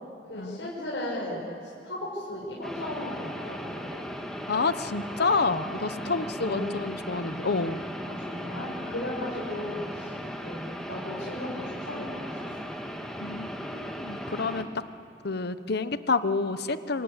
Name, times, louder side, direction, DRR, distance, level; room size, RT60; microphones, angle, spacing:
voice 1, 0.3-4.0 5.9-6.9 8.1-10.2 10.4-12.5, left 1 dB, 80° left, -5 dB, 6.1 m, -36 dB
sound 1, 2.6-14.6, equal, 5° left, 1.9 m, -37 dB
voice 2, 4.5-7.8 13.2-14.8 15.2-17.0, left 4 dB, 60° left, 12 dB, 1.1 m, -28 dB
27.5 x 25.5 x 8.4 m, 2.4 s
head